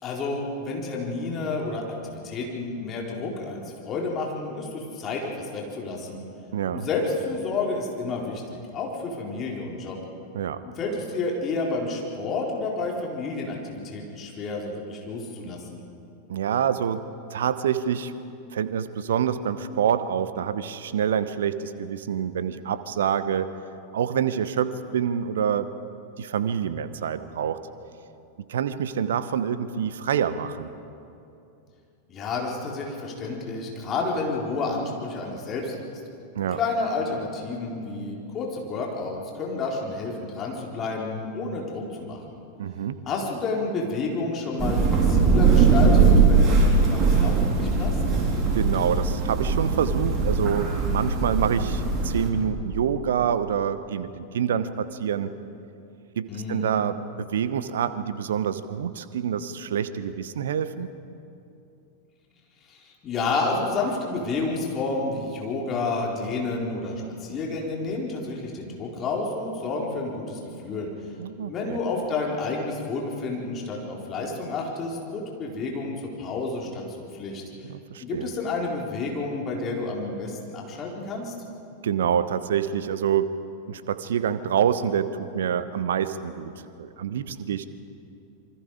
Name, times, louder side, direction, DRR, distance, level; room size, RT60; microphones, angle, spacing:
voice 1, 0.0-6.2 6.7-10.0 10.6-15.8 32.1-35.8 36.4-42.4 43.1-48.0 56.3-56.7 62.7-71.1 71.4-76.8 77.1-77.4 78.0-81.3, left 3 dB, 30° left, -1 dB, 4.3 m, -30 dB
voice 2, 6.5-6.9 10.3-10.6 16.3-17.0 17.3-18.1 18.5-23.5 23.9-25.7 26.2-27.6 28.5-30.7 36.3-36.6 42.6-43.0 48.5-55.3 56.1-60.9 71.2-71.8 77.7-78.3 81.8-83.4 83.7-87.7, right 8 dB, 60° right, 13 dB, 1.1 m, -26 dB
Thunder / Rain, 44.6-52.3, right 4 dB, 30° right, 4.1 m, -20 dB
27.5 x 24.0 x 5.0 m, 2.7 s
figure-of-eight pair, 90°, 0 cm